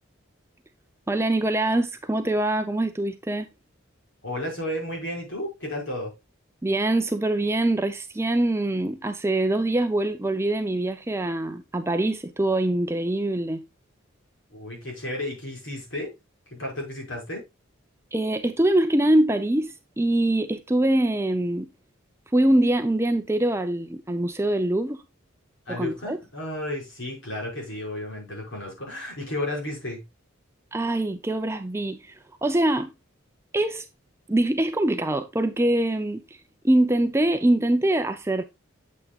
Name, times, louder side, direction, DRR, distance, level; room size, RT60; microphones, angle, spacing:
voice 1, 1.1-3.5 6.6-13.6 18.1-21.7 22.3-25.0 25.7-26.2 30.7-32.9 33.5-33.9 34.3-36.2 36.6-38.4, right 1 dB, 10° right, 0.5 m, -24 dB
voice 2, 4.2-6.1 14.5-16.1 16.5-17.4 25.7-30.0, left 1 dB, 60° left, 5.5 m, -33 dB
8.4 x 8.2 x 2.4 m
head